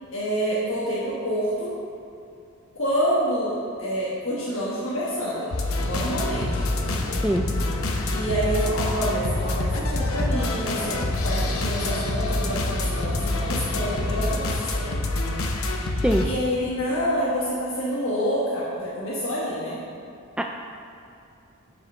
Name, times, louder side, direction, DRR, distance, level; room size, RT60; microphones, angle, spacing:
voice 1, 0.1-1.7 2.7-5.5 5.8-6.7 8.1-11.0 11.2-15.0 16.2-19.8, equal, 65° left, -7 dB, 1.4 m, -27 dB
sound 1, 5.5-16.3, left 2 dB, 85° left, 0.8 m, -26 dB
sound 2, 5.7-14.4, left 1 dB, 30° left, 0.7 m, -35 dB
voice 2, 7.2-7.4 16.0-16.3 20.4-20.5, right 1 dB, 5° right, 2 dB, 0.3 m, -22 dB
8.7 x 5.1 x 5.5 m, 2.6 s
head